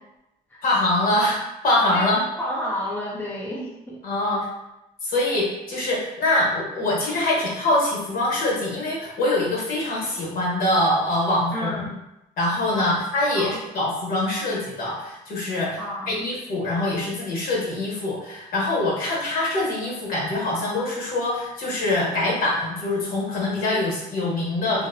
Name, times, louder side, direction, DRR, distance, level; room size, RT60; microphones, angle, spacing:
voice 1, 0.6-2.2 4.0-4.4 5.0-11.9 12.4-15.8 16.1-24.9, left 1 dB, 60° left, -4 dB, 1.0 m, -24 dB
voice 2, 1.9-4.0 11.5-11.9 12.7-12.9 13.4-13.6 15.8-16.3, left 1 dB, 10° left, -4 dB, 0.5 m, -31 dB
2.6 x 2.0 x 2.5 m, 0.91 s
cardioid pair, 110°, 17 cm